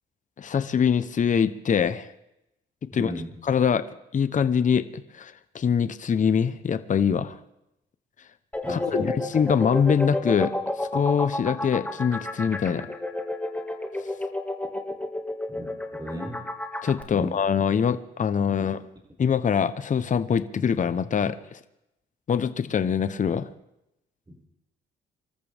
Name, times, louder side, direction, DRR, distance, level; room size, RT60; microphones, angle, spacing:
voice 1, 0.4-2.1 2.9-3.1 3.4-3.8 4.1-7.4 8.7-12.9 16.8-18.8 19.2-21.6 22.3-23.5, left 7 dB, 40° left, 13 dB, 0.9 m, -24 dB
voice 2, 2.9-3.3 8.6-9.2 15.5-15.7 15.9-16.4 17.1-17.4 18.6-18.7, equal, 20° right, 0 dB, 5.6 m, -35 dB
sound 1, 8.5-17.0, left 2 dB, 5° left, 2.0 m, -30 dB
25.5 x 13.5 x 3.5 m, 0.84 s
cardioid pair, 90°, 20 cm